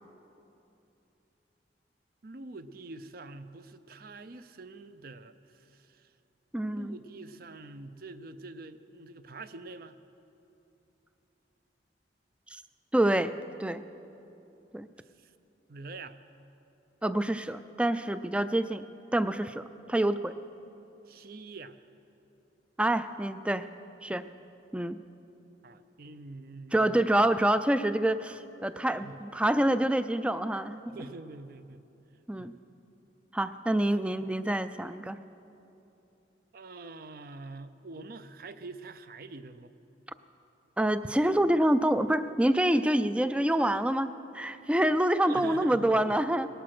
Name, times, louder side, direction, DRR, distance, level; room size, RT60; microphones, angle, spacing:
voice 1, 2.2-6.1 6.6-10.0 15.0-15.3 15.7-16.2 21.1-21.8 25.6-27.0 28.9-29.2 30.9-31.8 32.4-32.5 36.5-39.7 45.2-46.2, right 3 dB, 55° right, 12 dB, 0.6 m, -45 dB
voice 2, 6.5-7.0 12.5-12.6 12.9-13.3 13.6-13.8 14.7-14.9 17.0-18.9 19.1-20.3 22.8-23.7 24.0-24.2 24.7-25.0 26.7-31.1 32.3-32.5 33.3-35.2 40.8-46.5, right 1 dB, 5° right, 12 dB, 0.3 m, -27 dB
19.0 x 11.0 x 6.0 m, 2.9 s
head